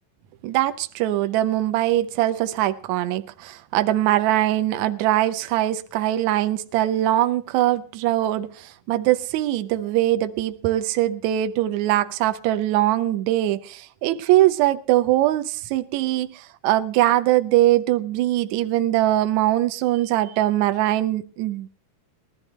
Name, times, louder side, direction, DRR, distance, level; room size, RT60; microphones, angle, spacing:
voice 1, 0.4-21.7, right 14 dB, 75° right, 2.0 m, -22 dB
20.5 x 13.5 x 3.1 m
omnidirectional pair, 3.5 m